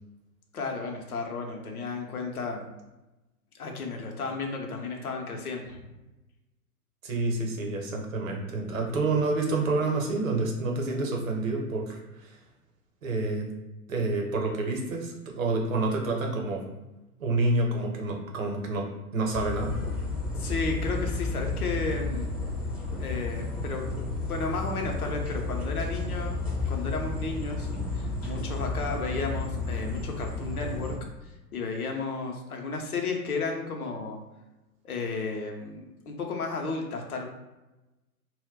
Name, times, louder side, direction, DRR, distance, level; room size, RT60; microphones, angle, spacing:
voice 1, 0.5-2.7 3.6-5.8 9.1-9.3 20.4-22.3 23.0-24.0 24.2-26.4 26.7-30.9 31.5-34.2 34.8-37.3, left 4 dB, 70° left, 2 dB, 0.7 m, -33 dB
voice 2, 7.0-12.4 13.0-13.5 13.9-16.6 17.2-18.8 19.1-19.7, right 2 dB, 60° right, 1 dB, 0.8 m, -28 dB
sound 1, 19.3-31.0, left 3 dB, 20° left, 0.5 m, -32 dB
2.1 x 2.1 x 3.5 m, 1.0 s
figure-of-eight pair, 105°, 45 cm